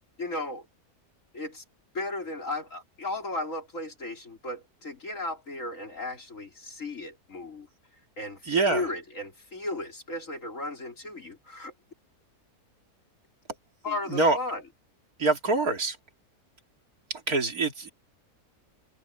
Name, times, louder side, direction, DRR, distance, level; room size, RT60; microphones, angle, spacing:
voice 1, 0.2-0.7 1.3-1.6 1.9-7.7 8.2-11.7 13.8-14.6, left 2 dB, 55° left, 4.3 m, -35 dB
voice 2, 8.5-8.9 14.1-14.4 15.2-16.0 17.1-17.9, right 3 dB, 70° right, 3.1 m, -25 dB
omnidirectional pair, 1.6 m